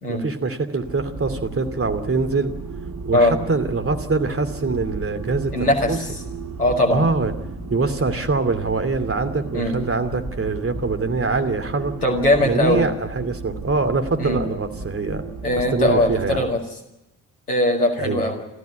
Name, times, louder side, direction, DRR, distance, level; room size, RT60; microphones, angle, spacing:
voice 1, 0.1-2.5 3.0-6.0 6.9-7.3 7.7-11.9 12.4-15.3 15.7-16.5 18.0-18.3, right 3 dB, 30° right, 8 dB, 2.7 m, -24 dB
sound 1, 0.8-16.5, right 4 dB, 50° right, 3.2 m, -34 dB
voice 2, 5.5-6.1 6.6-7.0 9.5-9.8 12.0-12.9 14.2-14.4 15.4-16.6 17.5-18.4, left 1 dB, 90° left, 1 dB, 2.1 m, -20 dB
26.5 x 15.0 x 9.5 m, 0.93 s
figure-of-eight pair, 40°, 44 cm